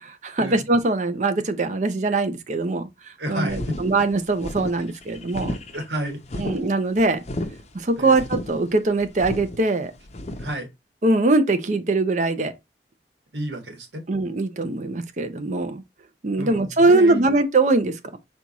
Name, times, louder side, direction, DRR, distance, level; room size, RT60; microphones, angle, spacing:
voice 1, 0.0-2.9 3.3-5.5 6.4-7.2 7.7-9.9 11.0-12.5 14.1-15.8 16.2-18.2, right 2 dB, 45° right, 0.5 m, -22 dB
voice 2, 3.2-3.8 5.7-6.4 8.0-8.2 10.4-10.7 13.3-14.0 16.4-17.3, equal, 80° right, 1.3 m, -31 dB
sound 1, 3.5-10.5, left 1 dB, 40° left, 0.6 m, -33 dB
4.4 x 2.3 x 3.9 m
head